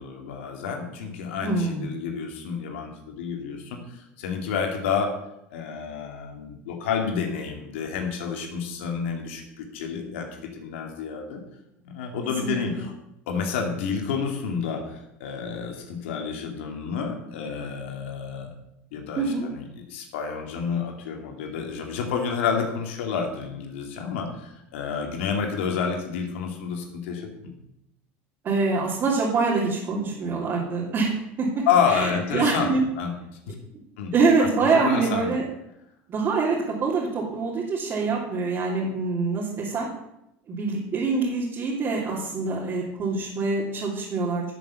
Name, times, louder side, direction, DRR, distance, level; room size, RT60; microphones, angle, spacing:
voice 1, 0.0-5.1 5.5-10.3 10.5-11.4 11.9-12.9 13.3-18.5 18.9-27.5 31.7-33.1 33.5-33.6 34.0-34.1 34.4-34.5 34.7-35.3, left 6 dB, 90° left, 3 dB, 2.5 m, -29 dB
voice 2, 1.4-1.9 12.4-12.8 19.2-19.5 28.4-32.8 34.1-35.5 36.1-39.9 40.5-44.4, right 4 dB, 35° right, -5 dB, 3.2 m, -25 dB
12.0 x 7.0 x 7.1 m, 0.83 s
supercardioid pair, 115°, 6 cm